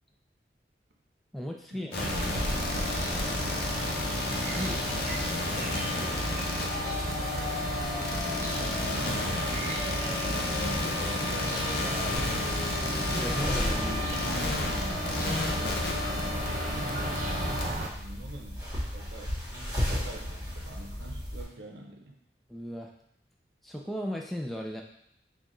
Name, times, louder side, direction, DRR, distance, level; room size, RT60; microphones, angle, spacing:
voice 1, 1.3-2.2 4.5-4.9 13.2-14.1 22.5-22.9 23.6-24.8, equal, ahead, 0 dB, 0.3 m, -36 dB
sound 1, 1.9-17.7, left 3 dB, 60° left, 0.6 m, -33 dB
sound 2, 1.9-17.9, right 1 dB, 45° right, 0.6 m, -33 dB
voice 2, 3.0-4.0 5.6-6.3 8.5-12.1 15.1-17.7 17.9-22.2, right 1 dB, 80° right, 2 dB, 0.7 m, -45 dB
sound 3, 12.1-21.4, equal, 20° right, 1.6 m, -35 dB
6.4 x 2.3 x 3.0 m, 0.71 s
head